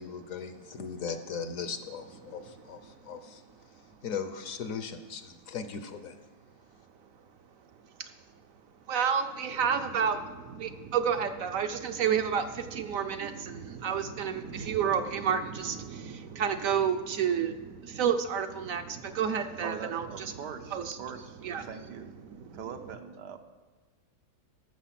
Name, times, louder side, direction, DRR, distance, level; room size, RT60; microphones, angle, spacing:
voice 1, 0.0-3.4 4.0-6.2, left 6 dB, 60° left, 9 dB, 1.0 m, -38 dB
voice 2, 8.9-20.3 20.7-21.0 21.4-21.7 22.2-22.6, right 7 dB, 65° right, 8 dB, 0.9 m, -30 dB
voice 3, 19.6-22.1 22.5-23.4, right 6 dB, 85° right, 6 dB, 1.5 m, -42 dB
14.0 x 6.5 x 5.8 m, 1.4 s
omnidirectional pair, 1.8 m